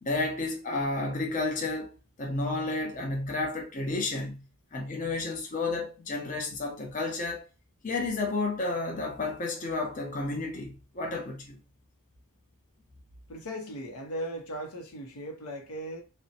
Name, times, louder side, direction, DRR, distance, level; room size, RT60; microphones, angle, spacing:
voice 1, 0.0-1.9 2.2-4.4 4.7-7.5 7.8-11.6, left 3 dB, 35° left, 0.5 m, -31 dB
voice 2, 13.3-16.0, equal, 90° left, 0.6 m, -37 dB
2.5 x 2.0 x 2.7 m
head